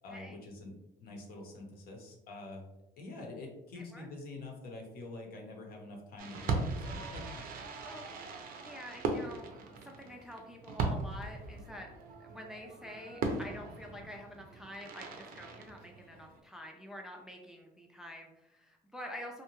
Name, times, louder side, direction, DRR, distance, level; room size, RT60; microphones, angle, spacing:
voice 1, 0.0-0.7 1.0-2.7 3.0-7.4, left 2 dB, 65° left, 1 dB, 0.8 m, -46 dB
voice 2, 3.7-4.1 7.8-8.1 8.6-11.9 12.2-19.4, left 1 dB, 5° right, 1 dB, 0.3 m, -47 dB
Fireworks, 6.2-16.4, right 3 dB, 60° right, 0.5 m, -39 dB
2.7 x 2.2 x 2.9 m, 0.93 s
cardioid pair, 110°, 17 cm